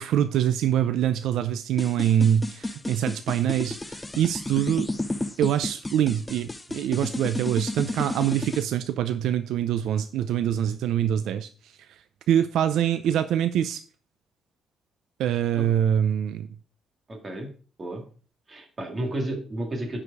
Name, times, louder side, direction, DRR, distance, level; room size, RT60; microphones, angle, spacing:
voice 1, 0.0-4.9 5.4-12.0 12.3-13.8 15.2-16.5, right 10 dB, 80° right, 11 dB, 0.5 m, -24 dB
sound 1, 1.8-8.6, left 2 dB, 10° left, 0.6 m, -32 dB
voice 2, 17.1-17.5 17.8-18.0 18.5-20.0, right 1 dB, 25° right, 2 dB, 2.1 m, -32 dB
10.0 x 5.0 x 4.8 m, 0.39 s
cardioid pair, 135°, 0 cm